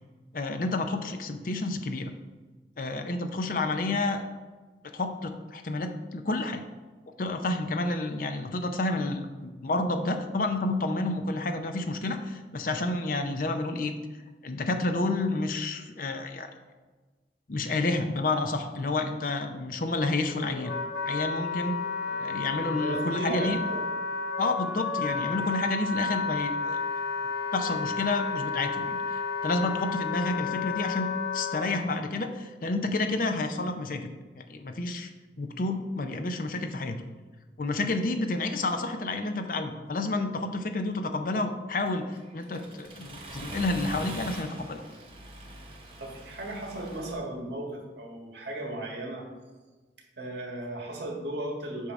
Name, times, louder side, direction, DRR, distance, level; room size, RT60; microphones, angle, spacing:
voice 1, 0.3-2.1 2.8-4.2 4.9-6.6 7.2-13.9 14.4-16.5 17.5-20.7 21.0-21.8 22.2-23.6 24.4-26.8 27.5-31.1 31.3-35.1 35.4-37.0 37.6-44.8, left 2 dB, 50° left, 6 dB, 0.5 m, -30 dB
Wind instrument woodwind instrument, 20.1-31.7, left 4 dB, 65° left, 1.3 m, -32 dB
voice 2, 22.6-23.8 46.0-49.3 50.2-51.9, right 1 dB, 75° right, 0 dB, 1.6 m, -36 dB
Accelerating revving vroom, 41.9-47.1, right 1 dB, 30° right, 1.0 m, -43 dB
8.2 x 2.8 x 5.9 m, 1.3 s
head